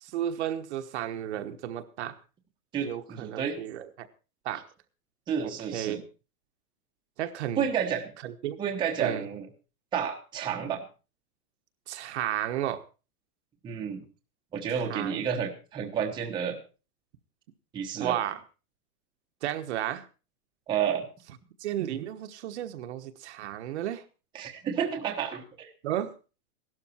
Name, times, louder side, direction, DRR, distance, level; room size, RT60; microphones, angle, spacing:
voice 1, 0.0-2.2 2.8-4.1 4.4-4.6 5.4-6.0 7.2-7.7 8.2-8.6 9.0-9.3 11.9-12.8 14.7-15.2 18.0-18.4 19.4-20.1 21.6-24.0 25.8-26.1, right 11 dB, 45° right, 8 dB, 1.2 m, -33 dB
voice 2, 2.7-3.6 5.3-6.0 7.6-8.1 8.6-9.5 9.9-10.8 13.6-14.0 14.5-16.6 17.7-18.2 20.7-21.1 24.3-25.7, right 8 dB, 10° right, 1 dB, 1.1 m, -30 dB
16.5 x 12.5 x 4.4 m, 0.34 s
supercardioid pair, 170°, 47 cm